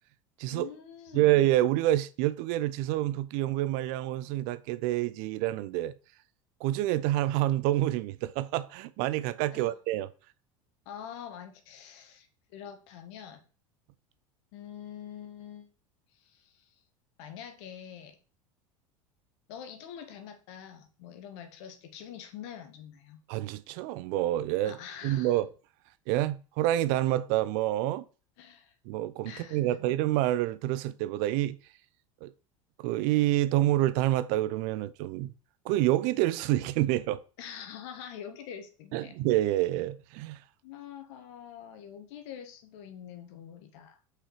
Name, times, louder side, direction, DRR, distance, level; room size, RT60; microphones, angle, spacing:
voice 1, 0.5-1.3 9.5-9.7 10.8-12.3 12.5-13.4 14.5-15.7 16.2-16.7 17.2-18.2 19.5-23.2 24.6-25.4 28.4-28.7 29.2-29.7 37.4-39.2 40.6-44.0, left 9 dB, 60° left, 1.6 m, -45 dB
voice 2, 1.1-5.9 6.6-10.1 23.3-24.8 25.0-25.5 26.1-28.0 28.9-31.6 32.2-32.3 32.8-35.3 35.6-37.2 38.9-40.4, right 15 dB, 50° right, 0.6 m, -27 dB
5.7 x 5.0 x 4.9 m
figure-of-eight pair, 75°, 17 cm